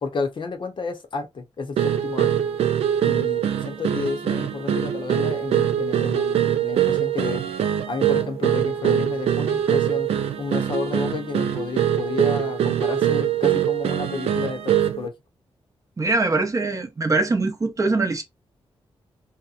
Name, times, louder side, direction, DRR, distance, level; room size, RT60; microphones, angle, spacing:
voice 1, 0.0-2.3 3.0-7.4 7.9-10.1 10.4-15.1, left 4 dB, 55° left, 0.7 m, -31 dB
sound 1, 1.8-15.1, right 10 dB, 80° right, 0.4 m, -23 dB
voice 2, 16.0-18.2, right 3 dB, 35° right, 0.6 m, -22 dB
2.9 x 2.1 x 2.4 m
cardioid pair, 75°, 10 cm